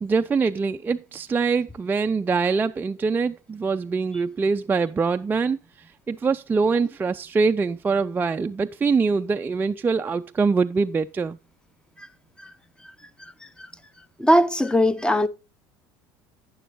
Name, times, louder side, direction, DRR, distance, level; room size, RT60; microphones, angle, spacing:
voice 1, 0.0-5.6 6.1-11.4, right 4 dB, 20° right, 0.4 m, -23 dB
voice 2, 14.2-15.3, equal, 10° left, 0.7 m, -20 dB
11.0 x 9.3 x 2.6 m
hypercardioid pair, 85°, 10 cm